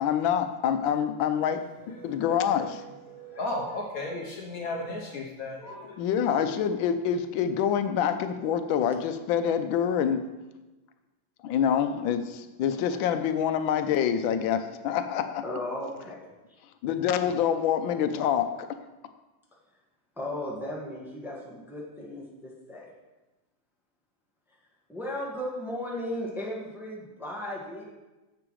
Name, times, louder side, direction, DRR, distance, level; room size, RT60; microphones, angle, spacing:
voice 1, 0.0-1.6 2.0-2.8 6.0-10.2 11.4-15.4 16.8-18.5, left 8 dB, 85° left, 9 dB, 1.3 m, -26 dB
voice 2, 1.8-2.1 2.4-6.0, left 2 dB, 60° left, 0 dB, 1.1 m, -35 dB
voice 3, 15.4-16.3 20.2-22.9 24.5-24.6 24.9-27.8, left 1 dB, ahead, -3 dB, 1.1 m, -36 dB
9.7 x 6.9 x 3.1 m, 1.1 s
omnidirectional pair, 2.1 m